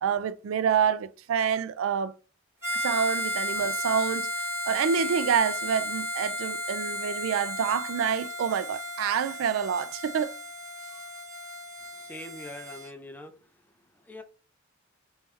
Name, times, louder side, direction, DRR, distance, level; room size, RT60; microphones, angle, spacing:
voice 1, 0.0-2.1 2.7-10.3, right 7 dB, 85° right, 0.3 m, -27 dB
Harmonica, 2.6-12.9, left 1 dB, 15° right, 1.6 m, -34 dB
voice 2, 11.9-14.2, left 1 dB, 10° left, 0.5 m, -44 dB
3.4 x 3.1 x 3.2 m
head